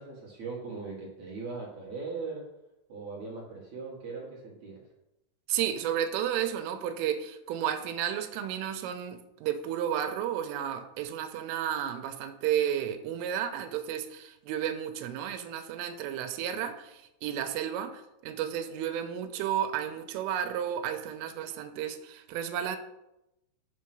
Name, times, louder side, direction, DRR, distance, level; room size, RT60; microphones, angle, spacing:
voice 1, 0.0-2.4 2.9-4.8, right 4 dB, 50° right, -3 dB, 2.3 m, -39 dB
voice 2, 5.5-22.8, right 10 dB, 90° right, 8 dB, 3.3 m, -32 dB
10.5 x 6.1 x 6.2 m, 0.90 s
omnidirectional pair, 5.8 m